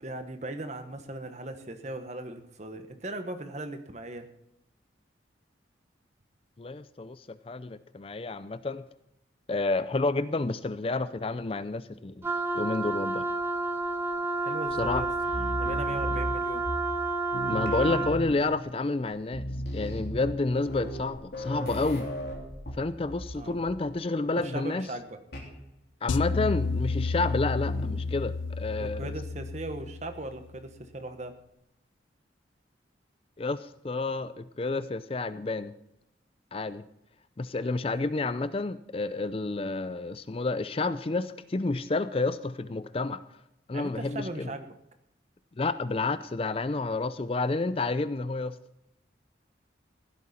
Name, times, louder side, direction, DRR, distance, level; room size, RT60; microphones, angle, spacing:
voice 1, 0.0-4.3 14.4-15.1 15.5-16.7 23.3-23.6 24.4-25.2 28.8-31.4 43.7-44.7, right 1 dB, 40° right, 7 dB, 1.2 m, -38 dB
voice 2, 6.6-8.8 9.5-12.3 12.5-13.2 14.8-15.0 17.5-19.4 19.7-22.1 22.8-24.9 26.0-29.1 33.4-35.7 36.5-36.8 37.4-43.2 43.7-44.5 45.6-48.6, left 3 dB, 30° left, 14 dB, 0.4 m, -30 dB
Wind instrument woodwind instrument, 12.2-18.2, right 3 dB, 10° right, 1.3 m, -30 dB
sound 1, 14.7-17.1 17.3-18.6 19.0-19.1 19.3-23.4 23.7-24.0 25.3-25.6 26.3-26.7 27.7-28.1, equal, 55° left, 3.3 m, -36 dB
sound 2, 26.1-30.4, left 4 dB, 90° left, 0.5 m, -31 dB
15.5 x 12.0 x 4.3 m, 0.80 s
head